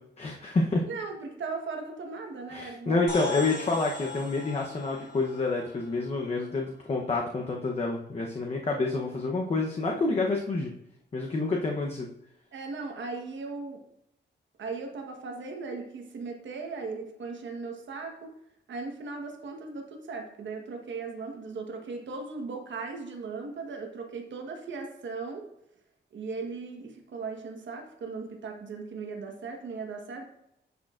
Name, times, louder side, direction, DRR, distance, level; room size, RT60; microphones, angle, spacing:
voice 1, 0.2-0.8 2.5-10.7 11.1-12.1, left 3 dB, 35° left, 0 dB, 0.8 m, -28 dB
voice 2, 0.9-3.1 12.5-13.8 14.6-18.3 18.7-25.5 26.1-30.2, right 4 dB, 80° right, 3 dB, 1.3 m, -38 dB
sound 1, 3.1-6.8, left 4 dB, 65° left, 3.2 m, -40 dB
10.5 x 6.5 x 2.5 m, 0.77 s
wide cardioid pair, 150°, 19 cm